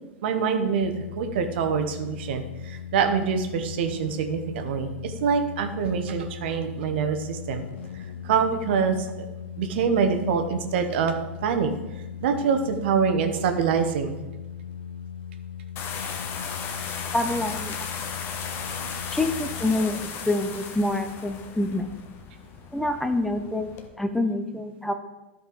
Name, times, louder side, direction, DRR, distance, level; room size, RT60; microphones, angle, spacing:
voice 1, 0.2-7.6 7.9-9.3 9.6-11.1 11.4-11.7 11.9-14.2 16.8-16.9 18.8-19.0, right 6 dB, 65° right, 6 dB, 1.1 m, -25 dB
sound 1, 0.8-19.7, left 8 dB, 70° left, 0.4 m, -38 dB
sound 2, 15.8-23.9, left 6 dB, 40° left, 1.1 m, -36 dB
voice 2, 17.1-17.8 19.1-21.9 22.7-23.7 24.0-24.9, left 2 dB, 5° left, 8 dB, 0.6 m, -26 dB
12.5 x 5.4 x 4.0 m, 1.1 s
figure-of-eight pair, 90°, 6 cm